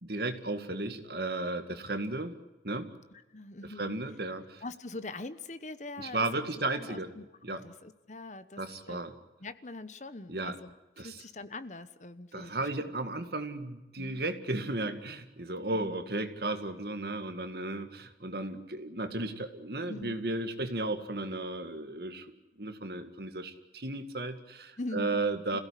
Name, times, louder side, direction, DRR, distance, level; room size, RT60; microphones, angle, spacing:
voice 1, 0.0-2.3 2.6-2.9 3.8-4.6 6.0-7.1 7.4-7.6 8.6-9.1 10.3-10.6 11.0-11.2 12.3-22.3 22.6-25.6, right 2 dB, 55° right, 8 dB, 2.1 m, -34 dB
voice 2, 3.1-4.0 4.6-6.4 6.7-8.6 8.9-9.0 9.4-12.7 14.0-14.2 15.7-15.9 19.9-20.2 24.8-25.6, left 2 dB, 40° left, 13 dB, 1.1 m, -43 dB
27.0 x 17.0 x 10.0 m, 1.1 s
head